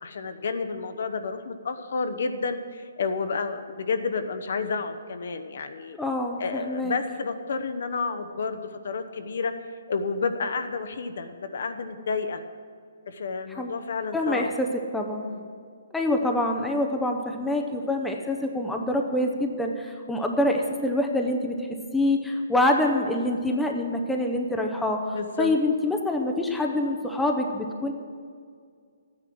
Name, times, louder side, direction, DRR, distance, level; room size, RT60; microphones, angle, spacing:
voice 1, 0.0-6.0 6.4-9.5 9.9-12.4 13.1-14.5 15.2-15.6 25.1-25.5, left 4 dB, 60° left, 8 dB, 0.9 m, -30 dB
voice 2, 6.0-7.0 13.6-13.7 14.1-15.3 15.9-27.9, left 1 dB, 5° left, 2 dB, 0.6 m, -26 dB
12.5 x 9.8 x 6.1 m, 2.1 s
hypercardioid pair, 165°, 0 cm